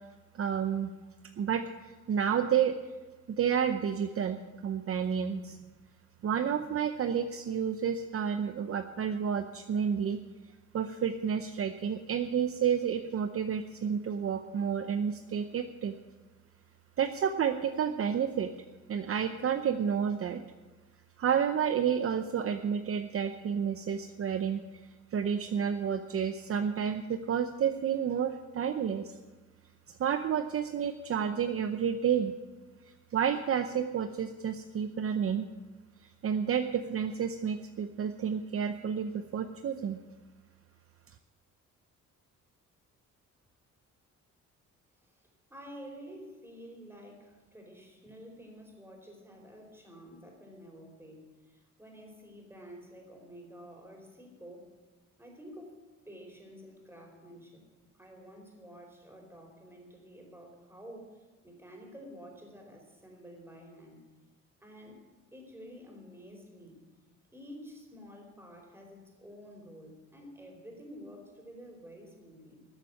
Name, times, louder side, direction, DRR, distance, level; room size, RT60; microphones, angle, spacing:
voice 1, 0.3-0.9 1.4-2.8 3.4-5.6 6.2-10.2 10.7-15.9 17.0-18.5 18.9-20.4 21.2-24.6 25.1-29.1 29.9-32.3 33.1-35.5 36.2-40.0, right 8 dB, 50° right, 8 dB, 0.8 m, -30 dB
voice 2, 45.0-54.7 55.2-55.7 56.1-57.6 57.9-64.0 64.6-66.8 67.3-72.7, equal, 10° right, 1 dB, 4.5 m, -50 dB
14.0 x 7.4 x 9.6 m, 1.3 s
cardioid pair, 90°, 30 cm